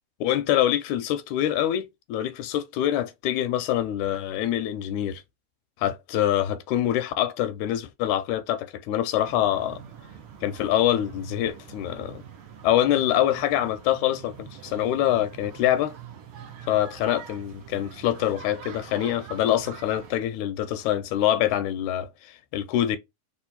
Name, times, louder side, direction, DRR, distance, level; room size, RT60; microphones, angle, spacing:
voice 1, 0.2-5.2 5.8-9.8 10.4-12.2 12.6-16.0 16.6-23.0, left 12 dB, 80° left, 1.9 m, -25 dB
sound 1, 9.2-20.2, right 8 dB, 85° right, 1.1 m, -44 dB
4.4 x 2.9 x 4.1 m
omnidirectional pair, 3.5 m